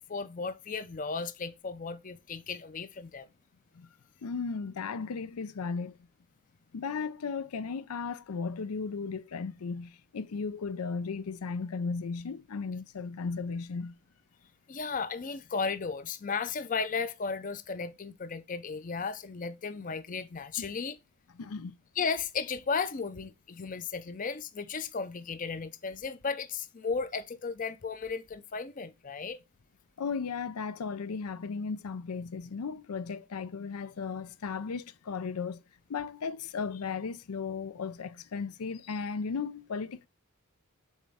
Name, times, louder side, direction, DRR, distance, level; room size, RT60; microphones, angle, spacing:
voice 1, 0.1-3.3 14.7-21.0 22.0-29.4, left 5 dB, 35° left, 0.5 m, -35 dB
voice 2, 4.2-6.0 6.7-14.0 20.6-20.7 21.4-21.7 30.0-35.6 35.9-40.1, left 5 dB, 90° left, 0.5 m, -35 dB
7.2 x 4.2 x 3.5 m
head